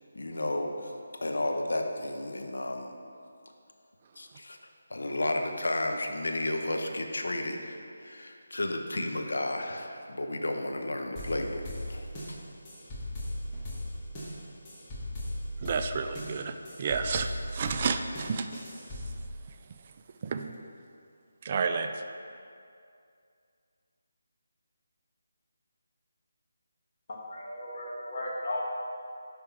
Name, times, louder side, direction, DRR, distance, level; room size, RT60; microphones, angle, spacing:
voice 1, 0.1-2.9 4.2-4.6 4.9-12.4, left 1 dB, 75° left, 3 dB, 0.8 m, -33 dB
sound 1, 11.2-19.2, left 1 dB, 15° left, 1.6 m, -38 dB
voice 2, 15.6-18.7 20.2-20.6 21.4-21.9, right 5 dB, 35° right, 7 dB, 0.3 m, -31 dB
voice 3, 27.3-28.6, left 1 dB, 50° left, -5 dB, 1.8 m, -35 dB
10.5 x 3.5 x 4.5 m, 2.4 s
figure-of-eight pair, 160°, 0 cm